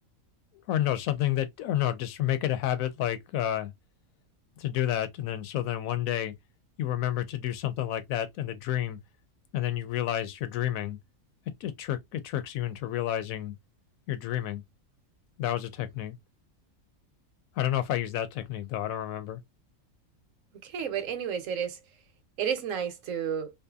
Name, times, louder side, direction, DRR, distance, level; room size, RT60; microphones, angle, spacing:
voice 1, 0.7-3.7 4.6-6.3 6.8-9.0 9.5-11.0 11.6-13.5 14.1-14.6 15.4-16.2 17.6-19.4, left 12 dB, 90° left, 1.0 m, -30 dB
voice 2, 20.6-21.8 22.4-23.5, right 8 dB, 75° right, 1.0 m, -31 dB
2.7 x 2.5 x 2.2 m
omnidirectional pair, 1.4 m